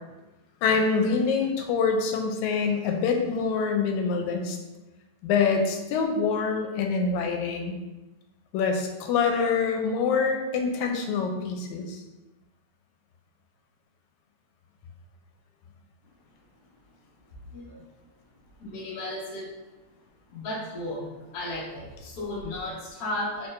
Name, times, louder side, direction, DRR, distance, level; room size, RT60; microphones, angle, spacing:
voice 1, 0.6-4.6 5.2-7.8 8.5-12.0, left 5 dB, 85° left, 3 dB, 2.0 m, -25 dB
voice 2, 17.5-17.8 18.6-19.5 20.3-23.5, left 1 dB, 60° left, -5 dB, 0.9 m, -34 dB
4.3 x 4.3 x 2.5 m, 1.1 s
omnidirectional pair, 3.3 m